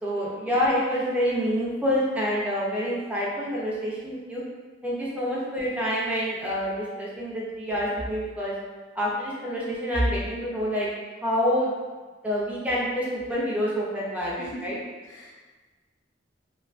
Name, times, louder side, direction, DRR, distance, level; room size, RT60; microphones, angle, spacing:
voice 1, 0.0-4.4 4.8-8.5 9.0-10.9 11.2-11.7 12.2-14.8, equal, 10° right, -6 dB, 0.4 m, -27 dB
voice 2, 6.8-7.3 14.4-15.5, equal, 75° left, -4 dB, 0.6 m, -43 dB
2.5 x 2.4 x 2.3 m, 1.3 s
head